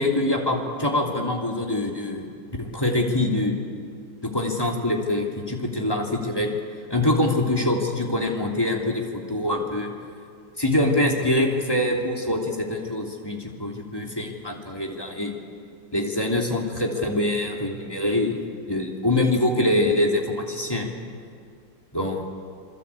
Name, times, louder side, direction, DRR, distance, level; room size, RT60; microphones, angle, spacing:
voice 1, 0.0-2.3 2.6-3.5 4.2-6.5 6.9-9.9 10.6-15.3 15.9-18.4 18.7-20.9 21.9-22.2, left 1 dB, 10° left, 0 dB, 3.0 m, -24 dB
27.0 x 22.5 x 8.6 m, 2.3 s
omnidirectional pair, 2.1 m